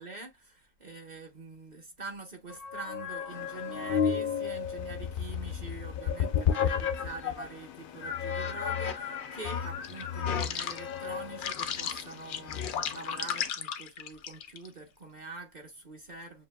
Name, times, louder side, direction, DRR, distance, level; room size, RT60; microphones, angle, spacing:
voice 1, 0.0-16.5, right 3 dB, 40° right, 0.8 m, -45 dB
sound 1, 2.5-7.5 8.0-14.7, left 8 dB, 70° left, 0.5 m, -32 dB
sound 2, 3.3-13.5, left 9 dB, 85° left, 1.0 m, -51 dB
6.7 x 2.6 x 2.2 m
omnidirectional pair, 1.4 m